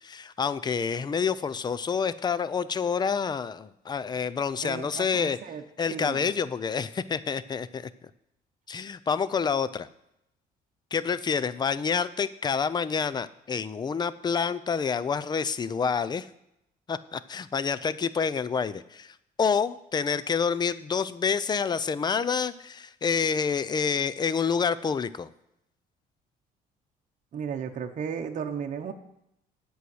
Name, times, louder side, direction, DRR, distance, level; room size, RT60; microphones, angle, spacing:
voice 1, 0.0-5.4 5.8-7.9 8.7-9.9 10.9-16.3 16.9-25.3, left 6 dB, 25° left, 16 dB, 0.5 m, -28 dB
voice 2, 4.6-5.6 5.9-6.3 27.3-28.9, right 7 dB, 45° right, 4 dB, 1.0 m, -34 dB
8.4 x 6.4 x 7.8 m, 0.81 s
cardioid pair, 110°, 17 cm